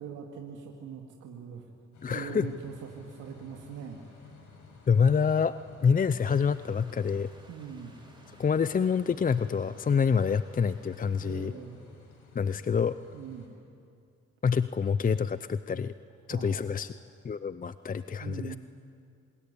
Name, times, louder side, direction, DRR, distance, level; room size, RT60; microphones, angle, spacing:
voice 1, 0.0-1.6 2.1-4.3 7.5-8.0 11.2-11.8 13.1-13.5 16.3-16.6 18.2-18.6, right 7 dB, 85° right, 1 dB, 2.3 m, -42 dB
sound 1, 1.9-13.5, left 4 dB, 80° left, 6.0 m, -54 dB
voice 2, 2.0-2.5 4.9-5.5 5.8-7.3 8.3-11.5 12.3-13.0 14.4-15.9 16.3-16.9 17.2-18.6, left 6 dB, 30° left, 13 dB, 0.6 m, -27 dB
sound 2, 6.2-11.5, right 2 dB, 15° right, 4.8 m, -58 dB
26.0 x 21.0 x 9.9 m, 2.5 s
cardioid pair, 90°, 30 cm